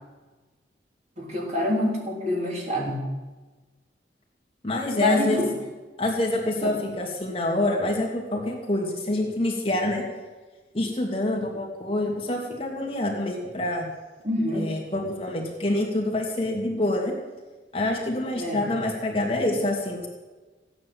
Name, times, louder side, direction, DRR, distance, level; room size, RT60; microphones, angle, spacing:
voice 1, 1.2-3.1 5.0-5.5 6.6-6.8 14.2-14.7 18.4-18.6, left 1 dB, 40° right, -1 dB, 3.4 m, -26 dB
voice 2, 4.6-5.4 6.0-10.0 10.7-13.9 14.5-17.1 17.7-20.1, left 1 dB, 30° left, -1 dB, 2.7 m, -26 dB
16.0 x 9.7 x 7.8 m, 1.3 s
head